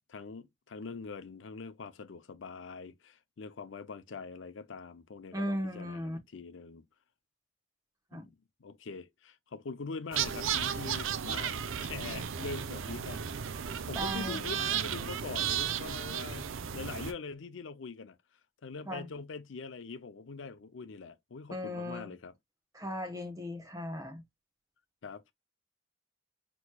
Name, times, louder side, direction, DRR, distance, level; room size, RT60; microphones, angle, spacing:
voice 1, 0.1-6.8 8.1-8.3 8.6-11.5 11.8-13.3 13.9-18.2 18.6-22.3 25.0-25.3, left 4 dB, 70° left, 0.5 m, -43 dB
voice 2, 5.3-6.2 8.1-8.3 13.9-14.4 18.9-19.1 21.5-22.1 22.7-24.2, equal, 15° right, 0.9 m, -37 dB
sound 1, 10.1-17.1, right 8 dB, 80° right, 0.5 m, -34 dB
6.1 x 3.0 x 2.2 m
head